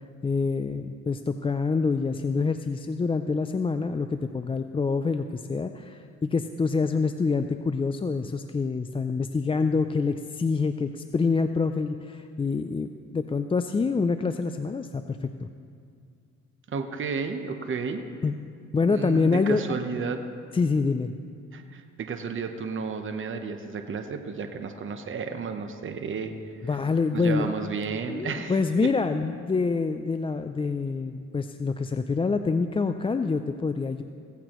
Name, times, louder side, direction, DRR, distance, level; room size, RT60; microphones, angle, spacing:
voice 1, 0.2-15.5 18.2-18.3 18.7-19.6 20.5-21.2 26.6-27.5 28.1-34.0, left 4 dB, 20° left, 8 dB, 0.4 m, -26 dB
voice 2, 16.7-18.0 18.9-20.2 21.5-26.3 27.1-28.6 28.8-28.9, right 5 dB, 40° right, 6 dB, 1.0 m, -32 dB
16.5 x 15.0 x 3.1 m, 2.3 s
cardioid pair, 90°, 30 cm